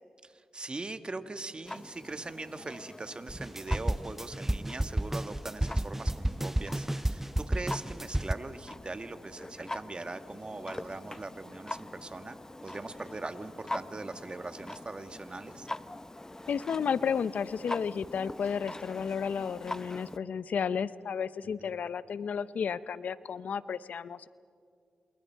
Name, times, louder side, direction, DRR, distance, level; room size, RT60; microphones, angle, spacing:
voice 1, 0.2-15.7 21.6-21.7, right 3 dB, 35° right, 9 dB, 1.6 m, -41 dB
Clock, 1.7-20.2, left 2 dB, 20° left, 0.8 m, -44 dB
sound 1, 3.3-8.3, right 1 dB, 10° right, 0.5 m, -31 dB
voice 2, 16.5-24.3, left 7 dB, 75° left, 16 dB, 0.6 m, -32 dB
28.5 x 27.5 x 4.6 m, 2.2 s
supercardioid pair, 40°, 3 cm